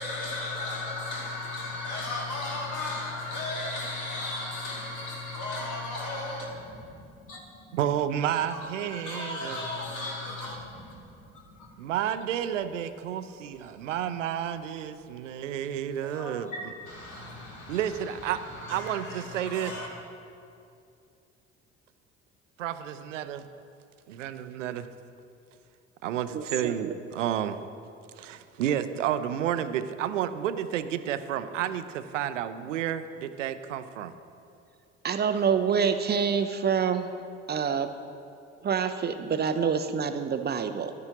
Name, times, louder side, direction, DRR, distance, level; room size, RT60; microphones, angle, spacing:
voice 1, 0.0-6.9 7.3-7.7 8.3-11.0 11.6-11.7 16.1-17.8 18.4-19.9, left 2 dB, 55° left, 2.5 m, -36 dB
voice 2, 7.7-9.7 11.8-16.7 17.7-18.4 18.7-19.8 22.6-23.5 24.1-24.9 26.0-27.6 28.2-34.1, right 10 dB, 80° right, 0.5 m, -31 dB
voice 3, 26.3-26.9 35.0-37.1 37.5-37.9 38.6-40.9, right 6 dB, 30° right, 0.5 m, -27 dB
12.0 x 9.6 x 2.9 m
figure-of-eight pair, 55°, 37 cm